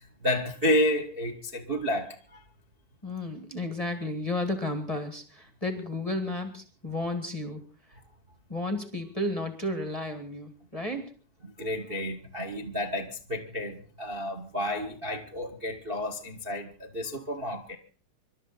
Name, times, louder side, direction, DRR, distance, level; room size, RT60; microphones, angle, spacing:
voice 1, 0.2-2.4 11.6-17.8, left 1 dB, 45° right, 0.6 m, -30 dB
voice 2, 3.0-7.6 8.5-11.1, left 1 dB, 25° left, 0.7 m, -32 dB
26.0 x 12.5 x 4.2 m
omnidirectional pair, 3.9 m